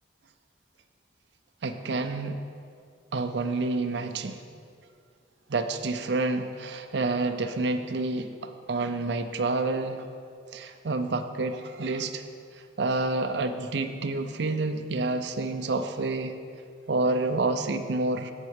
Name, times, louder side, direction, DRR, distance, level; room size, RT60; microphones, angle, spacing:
voice 1, 1.6-2.4 3.1-4.4 5.5-10.1 10.5-12.3 12.8-16.4 16.9-18.3, right 3 dB, 65° right, 6 dB, 0.5 m, -28 dB
8.1 x 7.3 x 6.4 m, 2.3 s
head